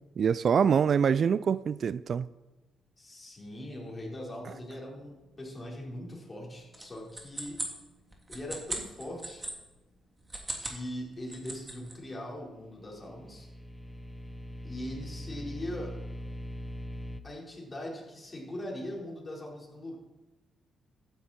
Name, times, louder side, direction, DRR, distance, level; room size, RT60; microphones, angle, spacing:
voice 1, 0.2-2.3, right 7 dB, 50° right, 0.3 m, -25 dB
voice 2, 3.0-7.6 8.3-9.5 10.6-13.5 14.6-15.9 17.2-20.0, left 1 dB, 25° left, 4.4 m, -41 dB
sound 1, 6.7-9.5 10.2-10.8 11.1-11.9, right 1 dB, 20° right, 2.9 m, -38 dB
sound 2, 12.7-17.2, left 1 dB, 5° left, 0.9 m, -41 dB
14.5 x 10.5 x 4.4 m
cardioid pair, 90°, 0 cm